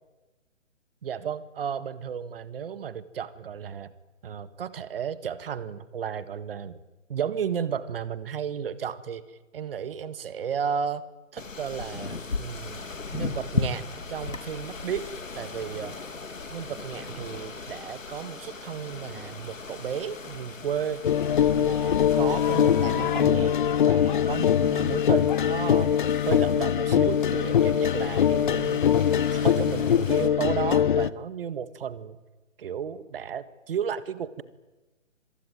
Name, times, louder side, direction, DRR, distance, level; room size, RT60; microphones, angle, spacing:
voice 1, 1.0-3.9 4.2-6.8 7.1-11.1 11.3-12.9 13.1-13.8 14.1-15.1 15.4-16.0 16.5-21.0 21.5-23.5 23.9-25.9 26.3-28.8 29.3-32.2 32.6-34.4, right 8 dB, 45° right, 14 dB, 1.9 m, -33 dB
sound 1, 11.4-30.3, left 4 dB, 90° left, 3.1 m, -38 dB
sound 2, 21.0-31.1, left 9 dB, 40° left, 0.9 m, -22 dB
25.5 x 23.5 x 9.2 m, 1.2 s
figure-of-eight pair, 150°, 38 cm